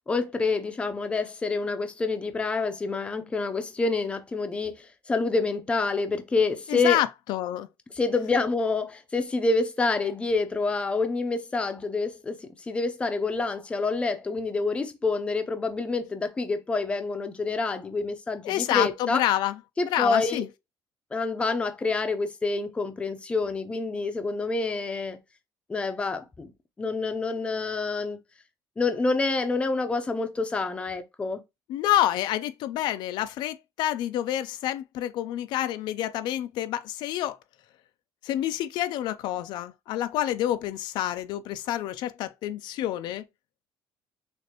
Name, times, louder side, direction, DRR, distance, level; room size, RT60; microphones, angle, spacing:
voice 1, 0.1-7.0 7.9-19.2 19.8-20.4 21.1-25.2 25.7-26.5 26.8-28.2 28.8-31.4, left 3 dB, 15° left, 0.5 m, -27 dB
voice 2, 6.7-7.7 18.4-19.6 19.8-20.5 31.7-37.4 38.2-43.2, left 13 dB, 70° left, 0.4 m, -28 dB
6.3 x 2.5 x 2.9 m
cardioid pair, 170°, 8 cm